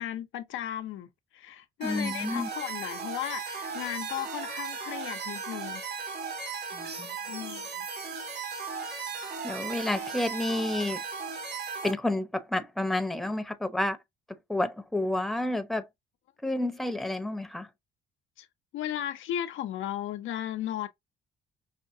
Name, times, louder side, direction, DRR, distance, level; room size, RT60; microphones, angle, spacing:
voice 1, 0.0-5.8 7.3-7.9 18.4-18.5 18.7-20.9, left 11 dB, 75° left, 0.7 m, -35 dB
voice 2, 1.8-2.5 6.7-7.1 9.4-11.0 11.8-14.0 14.5-15.9 16.4-17.7, left 1 dB, ahead, 0.8 m, -30 dB
sound 1, 1.8-11.9, right 5 dB, 55° right, 1.9 m, -36 dB
5.6 x 2.2 x 2.6 m
cardioid pair, 90°, 20 cm